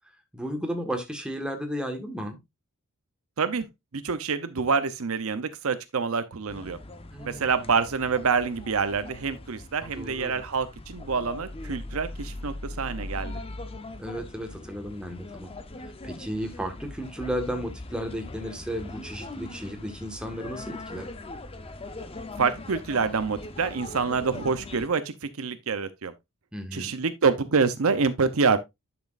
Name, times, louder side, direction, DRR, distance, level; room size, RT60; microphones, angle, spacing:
voice 1, 0.3-2.4 7.1-7.6 9.8-10.4 14.0-15.5 16.0-21.1 26.5-26.9, equal, 5° right, 1.5 m, -34 dB
voice 2, 3.9-6.8 7.2-13.4 22.4-26.1 26.7-28.6, right 5 dB, 65° right, 0.7 m, -26 dB
sound 1, 6.5-24.9, left 2 dB, 25° left, 0.7 m, -40 dB
10.5 x 6.0 x 2.5 m
head